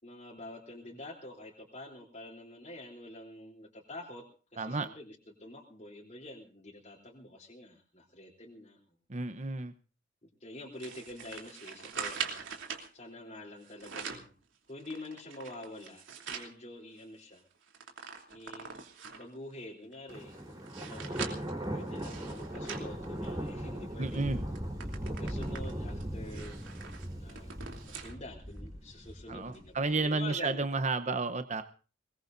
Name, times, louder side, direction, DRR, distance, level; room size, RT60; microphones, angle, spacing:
voice 1, 0.0-8.8 10.2-12.7 12.9-14.3 14.7-16.0 16.3-17.4 18.3-18.7 19.1-24.3 25.0-26.6 27.1-30.7, left 1 dB, 35° left, -2 dB, 3.5 m, -47 dB
voice 2, 4.6-4.9 9.1-9.7 24.0-24.4 29.3-31.6, right 3 dB, 35° right, 10 dB, 0.9 m, -32 dB
sound 1, 10.8-12.9 13.6-14.3 14.8-16.5 17.0-17.1 17.3-19.3 19.9-23.7 24.1-24.2 24.5-28.2 28.6-28.7 29.5-29.6, right 6 dB, 75° right, 3.1 m, -43 dB
Thunder, 20.1-29.9, equal, 20° right, 4.0 m, -39 dB
23.0 x 21.0 x 2.7 m, 0.38 s
head